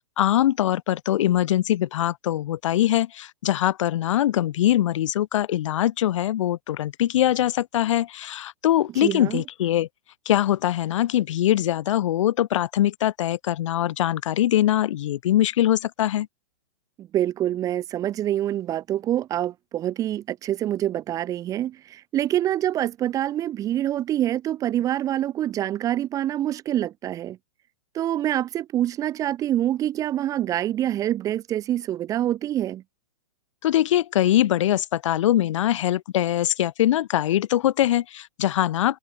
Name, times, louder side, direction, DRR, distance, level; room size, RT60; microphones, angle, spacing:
voice 1, 0.2-9.9 10.3-16.3 33.6-39.0, left 12 dB, 50° left, 2.1 m, -22 dB
voice 2, 9.0-9.4 17.0-27.4 27.9-32.8, right 12 dB, 15° right, 3.1 m, -26 dB
hypercardioid pair, 170°, 19 cm